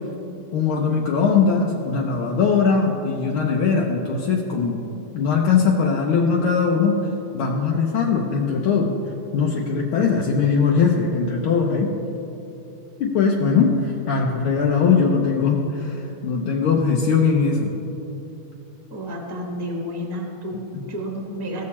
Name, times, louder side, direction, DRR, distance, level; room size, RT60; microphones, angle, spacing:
voice 1, 0.5-4.8 5.1-6.9 7.3-8.9 9.3-11.9 13.0-17.8 20.7-20.8, left 5 dB, 80° left, -2 dB, 1.7 m, -20 dB
voice 2, 18.9-21.7, equal, 15° right, 1 dB, 0.9 m, -31 dB
16.5 x 6.6 x 4.2 m, 2.9 s
omnidirectional pair, 2.3 m